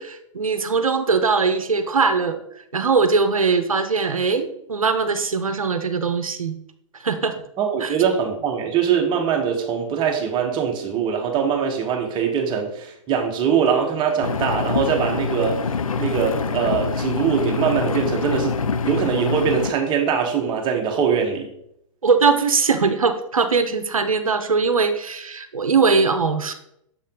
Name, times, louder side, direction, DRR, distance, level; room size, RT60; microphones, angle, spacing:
voice 1, 0.0-2.4 2.7-6.6 7.0-7.4 7.8-7.9 22.0-26.5, right 4 dB, 85° right, 9 dB, 0.7 m, -21 dB
voice 2, 7.6-15.6 16.0-18.6 18.9-21.5, right 7 dB, 25° right, 1 dB, 1.3 m, -22 dB
Engine, 14.2-19.7, left 5 dB, 85° left, 0.4 m, -25 dB
7.2 x 4.1 x 3.8 m, 0.75 s
figure-of-eight pair, 115°, 17 cm